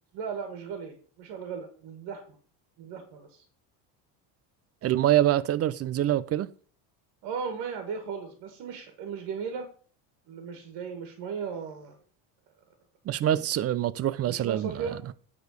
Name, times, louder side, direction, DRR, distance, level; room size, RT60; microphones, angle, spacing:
voice 1, 0.1-2.2 2.8-3.4 7.2-9.7 10.3-12.0 14.2-15.0, right 6 dB, 65° right, 2.1 m, -36 dB
voice 2, 4.8-6.5 13.0-14.9, right 12 dB, 35° right, 0.5 m, -25 dB
9.7 x 4.3 x 6.6 m
cardioid pair, 125°, 44 cm